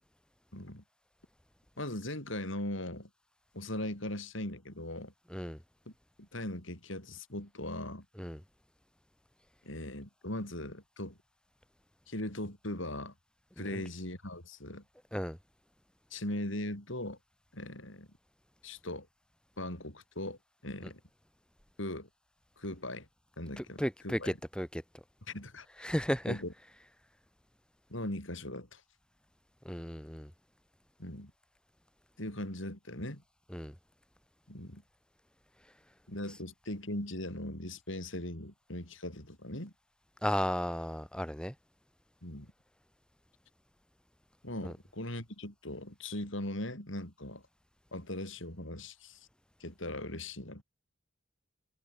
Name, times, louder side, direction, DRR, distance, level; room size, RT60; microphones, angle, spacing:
voice 1, 0.5-0.8 1.8-3.1 3.5-5.1 6.2-8.0 9.6-11.2 12.1-13.1 13.6-14.8 16.1-17.2 17.5-18.1 18.6-19.1 19.6-21.0 21.8-22.1 22.6-23.1 23.4-24.4 25.3-25.9 26.3-26.5 27.9-28.8 31.0-31.3 32.2-33.2 34.5-34.8 36.1-39.7 42.2-42.5 44.4-47.4 47.9-49.2 49.6-50.6, left 1 dB, 65° left, 6.6 m, -39 dB
voice 2, 23.6-24.8 25.8-26.4 29.6-30.3 33.5-33.7 40.2-41.5 44.6-44.7, equal, 5° left, 6.1 m, -34 dB
head